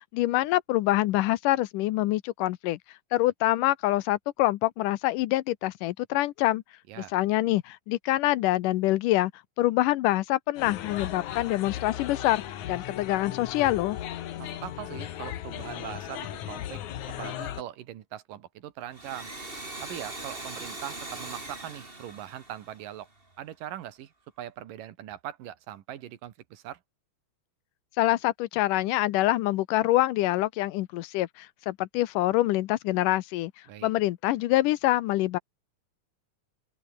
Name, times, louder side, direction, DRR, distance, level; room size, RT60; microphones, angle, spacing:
voice 1, 0.0-2.8 3.1-6.6 7.0-9.3 9.6-12.4 12.7-14.0 28.0-33.5 33.8-35.4, left 16 dB, 80° left, 2.3 m, -25 dB
sound 1, 10.6-17.6, left 11 dB, 65° left, 2.7 m, -37 dB
voice 2, 14.4-16.8 17.2-19.3 19.8-23.1 23.4-24.1 24.4-26.8 33.7-33.9, right 12 dB, 90° right, 3.1 m, -41 dB
Domestic sounds home sounds, 18.8-23.3, right 2 dB, 15° right, 3.8 m, -41 dB
open air
omnidirectional pair, 3.8 m